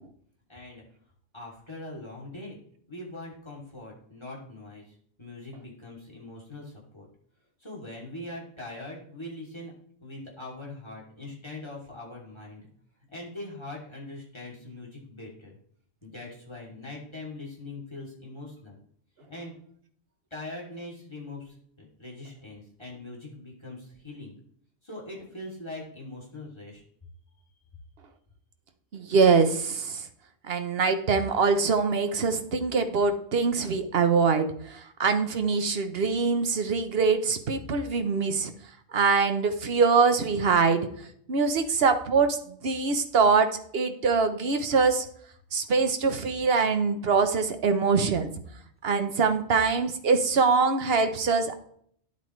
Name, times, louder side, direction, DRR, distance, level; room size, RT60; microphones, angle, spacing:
voice 1, 0.5-0.8 1.3-2.6 2.9-7.1 7.6-9.7 10.0-12.6 13.1-15.6 16.0-18.8 19.3-19.5 20.3-24.4 24.8-26.8, left 2 dB, 20° left, -3 dB, 3.1 m, -42 dB
voice 2, 28.9-30.0 30.5-38.5 38.9-40.9 41.3-45.0 45.5-48.3 48.8-51.6, right 4 dB, 55° right, 8 dB, 1.2 m, -24 dB
10.0 x 8.3 x 3.2 m, 0.63 s
omnidirectional pair, 1.3 m